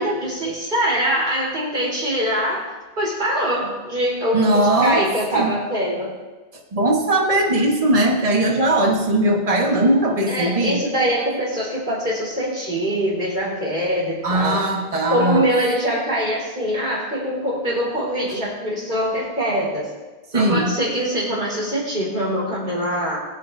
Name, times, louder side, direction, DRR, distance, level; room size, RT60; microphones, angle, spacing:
voice 1, 0.0-2.7 3.0-6.1 10.3-14.6 15.1-19.9 20.3-23.2, equal, 55° right, -5 dB, 4.2 m, -23 dB
voice 2, 4.3-5.6 6.7-10.8 14.2-15.5 20.3-20.7, right 1 dB, 35° right, 0 dB, 1.4 m, -19 dB
21.5 x 9.2 x 2.7 m, 1.2 s
omnidirectional pair, 1.1 m